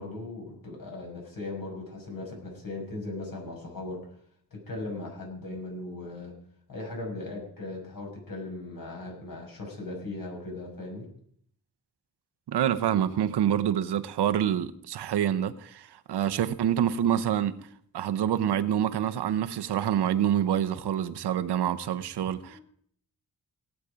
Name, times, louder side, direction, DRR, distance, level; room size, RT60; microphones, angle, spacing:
voice 1, 0.0-4.0 4.7-6.3 6.7-11.1 22.5-22.6, left 2 dB, 60° left, 6.5 m, -38 dB
voice 2, 12.5-17.7 17.9-22.6, right 10 dB, 85° right, 0.9 m, -27 dB
18.0 x 8.3 x 5.0 m
cardioid pair, 75°, 39 cm